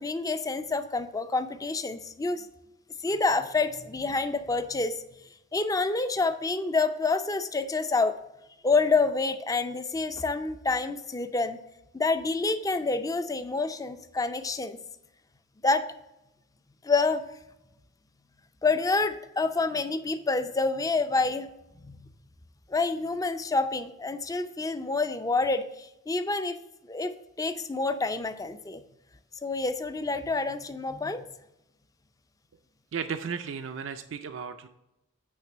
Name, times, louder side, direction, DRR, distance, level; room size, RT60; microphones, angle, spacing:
voice 1, 0.0-2.5 3.0-5.0 5.5-8.1 8.6-11.6 11.9-14.8 15.6-15.8 16.8-17.3 18.6-21.5 21.8-22.1 22.7-26.6 26.9-28.8 29.4-31.2, left 3 dB, 15° left, 10 dB, 0.4 m, -28 dB
voice 2, 32.9-34.7, right 6 dB, 65° right, 8 dB, 0.4 m, -34 dB
8.8 x 3.3 x 6.0 m, 0.91 s
head